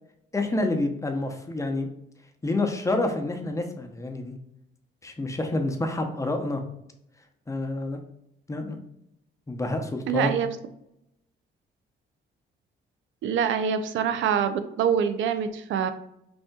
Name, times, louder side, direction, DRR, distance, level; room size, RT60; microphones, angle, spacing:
voice 1, 0.3-1.9 2.4-4.3 5.0-6.6 7.5-8.0 8.5-8.8 9.5-10.3, left 2 dB, 15° left, 4 dB, 0.8 m, -28 dB
voice 2, 10.1-10.5 13.2-15.9, right 8 dB, 75° right, 9 dB, 0.5 m, -25 dB
5.3 x 2.8 x 2.3 m, 0.79 s
cardioid pair, 90°, 20 cm